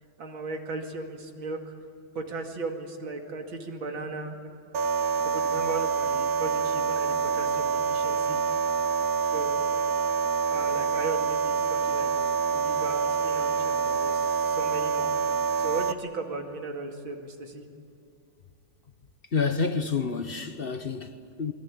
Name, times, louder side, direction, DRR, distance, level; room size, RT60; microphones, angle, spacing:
voice 1, 0.2-1.7 2.1-4.5 5.2-8.4 9.3-9.6 10.5-12.1 12.4-15.1 15.6-17.6, right 3 dB, 80° right, 3.1 m, -36 dB
sound 1, 4.7-15.9, right 6 dB, 55° right, 1.2 m, -26 dB
voice 2, 19.3-21.5, left 5 dB, 40° left, 0.9 m, -29 dB
27.0 x 22.5 x 8.6 m
omnidirectional pair, 2.1 m